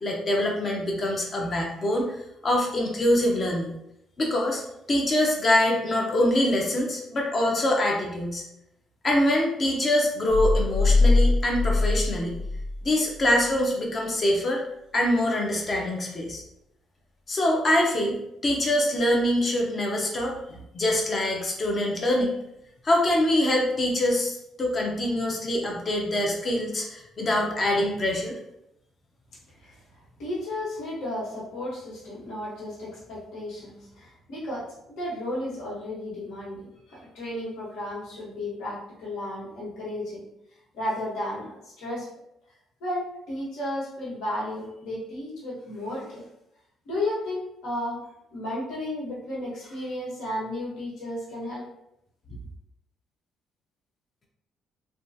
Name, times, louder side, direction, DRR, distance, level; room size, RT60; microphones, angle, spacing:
voice 1, 0.0-3.7 4.2-4.6 4.9-8.4 9.0-12.4 12.8-14.6 14.9-16.4 17.3-18.2 18.4-22.4 22.8-28.4, left 1 dB, 30° left, -1 dB, 0.5 m, -24 dB
sound 1, 10.3-12.9 13.2-13.3, left 3 dB, 70° left, 0.9 m, -22 dB
voice 2, 30.2-40.2 40.7-42.1 42.8-46.3 46.8-48.0 48.3-51.6, left 1 dB, 85° left, -5 dB, 1.3 m, -33 dB
3.3 x 2.3 x 2.7 m, 0.82 s
cardioid pair, 160°, 0 cm